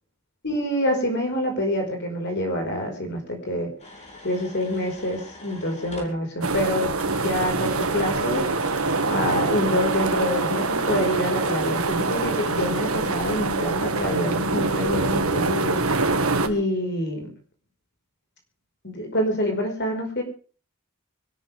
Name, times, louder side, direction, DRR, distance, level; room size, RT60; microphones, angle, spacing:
voice 1, 0.4-3.7 4.2-8.6 9.1-15.8 16.4-17.3 18.8-20.2, left 1 dB, 50° left, 2 dB, 4.9 m, -26 dB
sound 1, 3.8-6.1 7.0-13.4, left 2 dB, 30° left, 5.2 m, -45 dB
sound 2, 6.4-16.5, right 3 dB, 70° right, 1.8 m, -24 dB
25.0 x 13.0 x 3.5 m, 0.39 s
head